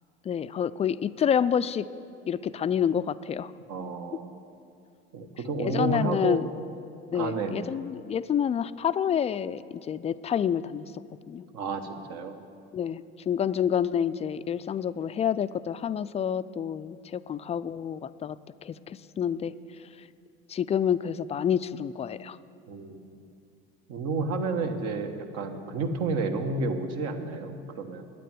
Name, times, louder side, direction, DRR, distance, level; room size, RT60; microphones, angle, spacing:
voice 1, 0.3-1.9 2.3-3.5 5.6-6.5 7.1-10.9 11.3-11.4 12.7-18.4 18.6-19.5 20.5-22.4, left 8 dB, 20° left, 15 dB, 0.3 m, -28 dB
voice 2, 3.7-4.3 5.1-6.4 7.1-7.7 11.5-12.4 22.7-23.2 23.9-28.1, right 3 dB, 60° right, 6 dB, 1.3 m, -31 dB
9.5 x 9.2 x 9.2 m, 2.5 s
hypercardioid pair, 80°, 30 cm